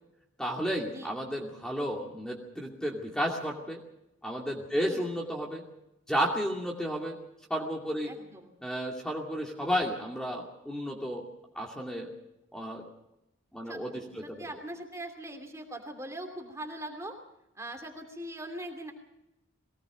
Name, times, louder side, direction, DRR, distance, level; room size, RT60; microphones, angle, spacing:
voice 1, 0.4-3.8 4.2-5.7 6.1-7.2 7.5-8.1 8.6-11.3 11.5-12.1 12.5-12.8 13.5-14.4, equal, 5° left, -2 dB, 2.4 m, -32 dB
voice 2, 8.1-8.5 13.7-17.2 17.5-18.9, right 1 dB, 15° right, 4 dB, 2.8 m, -41 dB
23.0 x 18.0 x 6.3 m, 0.87 s
head